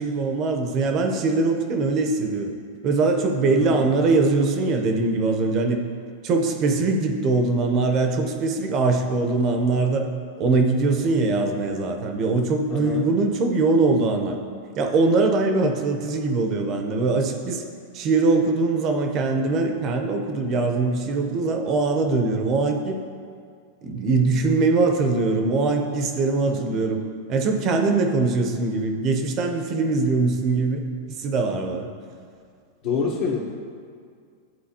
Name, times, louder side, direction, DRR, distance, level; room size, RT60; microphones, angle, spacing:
voice 1, 0.0-2.5 2.8-5.8 6.2-10.1 10.4-14.4 14.8-17.6 17.9-23.0 23.8-27.0 27.3-30.8 31.1-31.9, right 3 dB, 40° right, 4 dB, 0.8 m, -22 dB
voice 2, 3.6-3.9 12.7-13.1 26.5-26.8 32.8-33.4, left 5 dB, 55° left, -4 dB, 1.1 m, -27 dB
10.5 x 3.9 x 2.9 m, 2.2 s
hypercardioid pair, 120°, 0 cm